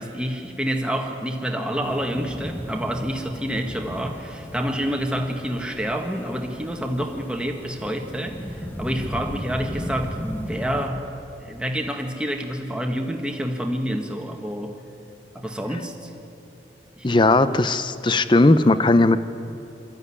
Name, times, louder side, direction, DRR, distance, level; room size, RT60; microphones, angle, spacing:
voice 1, 0.0-11.1 11.4-14.8 15.3-16.1 17.0-17.1, equal, 5° right, 3 dB, 1.6 m, -28 dB
sound 1, 1.8-10.9, equal, 10° left, 1.2 m, -35 dB
voice 2, 17.0-19.2, left 2 dB, 25° left, 13 dB, 0.6 m, -17 dB
23.5 x 13.5 x 9.8 m, 2.9 s
head